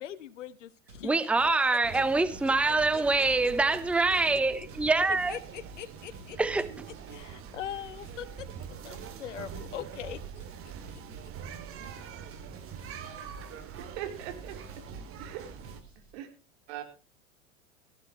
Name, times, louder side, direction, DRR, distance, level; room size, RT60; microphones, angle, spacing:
voice 1, 0.0-1.2 1.9-2.0 2.9-3.3 5.3-6.4 7.1-8.5 8.8-10.2, left 10 dB, 70° left, 15 dB, 1.4 m, -41 dB
sound 1, 0.9-16.1, right 2 dB, 80° right, 5.2 m, -53 dB
voice 2, 1.0-5.4 6.4-6.9, right 3 dB, 5° right, 15 dB, 0.8 m, -25 dB
sound 2, 1.8-15.8, right 7 dB, 35° right, 2.5 m, -44 dB
voice 3, 13.8-14.6 15.2-15.4 16.1-16.3 16.7-16.8, right 11 dB, 55° right, 5 dB, 3.8 m, -39 dB
18.0 x 15.0 x 3.1 m, 0.32 s
figure-of-eight pair, 90°, 38 cm